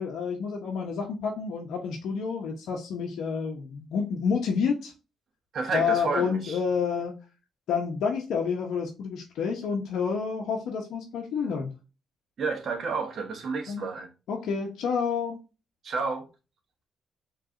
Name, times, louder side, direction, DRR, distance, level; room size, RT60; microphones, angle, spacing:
voice 1, 0.0-4.9 5.7-7.1 7.7-11.7 13.7-13.8 14.3-15.4, left 6 dB, 75° left, 0.9 m, -29 dB
voice 2, 5.5-6.6 12.4-14.1 15.8-16.3, right 4 dB, 55° right, 1.3 m, -30 dB
4.8 x 3.3 x 2.6 m
cardioid pair, 90°, 0 cm